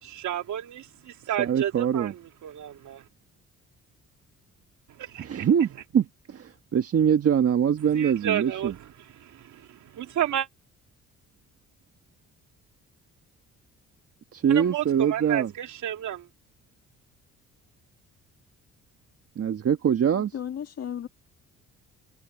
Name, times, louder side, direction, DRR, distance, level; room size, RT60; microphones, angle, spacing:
voice 1, 0.0-3.0 5.0-5.5 7.9-10.5 14.5-16.3, right 11 dB, 75° right, 2.9 m, -32 dB
voice 2, 1.4-2.1 5.2-8.7 14.3-15.5 19.4-20.3, right 8 dB, 50° right, 1.5 m, -23 dB
voice 3, 20.1-21.1, left 9 dB, 55° left, 2.1 m, -35 dB
cardioid pair, 90°, 30 cm